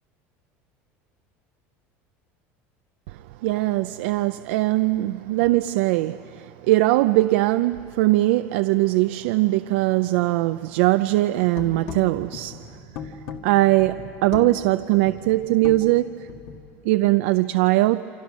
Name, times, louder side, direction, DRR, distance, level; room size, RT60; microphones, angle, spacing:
voice 1, 3.1-12.8 13.4-16.3 16.8-18.1, right 17 dB, 85° right, 0.5 m, -21 dB
sound 1, 11.4-16.7, left 6 dB, 65° left, 2.0 m, -37 dB
28.5 x 26.5 x 6.2 m
cardioid pair, 140°, 6 cm